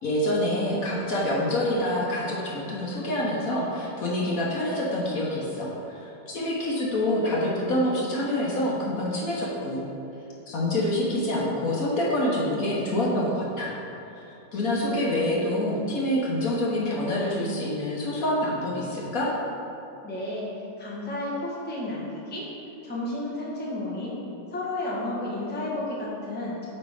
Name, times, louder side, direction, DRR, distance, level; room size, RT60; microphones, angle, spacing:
voice 1, 0.0-9.9 10.5-13.8 14.1-14.2 14.5-19.3, left 1 dB, 60° left, -4 dB, 1.2 m, -26 dB
voice 2, 20.0-20.5 20.8-22.5 22.8-24.2 24.5-26.7, left 1 dB, 10° left, -6 dB, 0.8 m, -32 dB
8.4 x 3.3 x 4.8 m, 2.8 s
omnidirectional pair, 1.9 m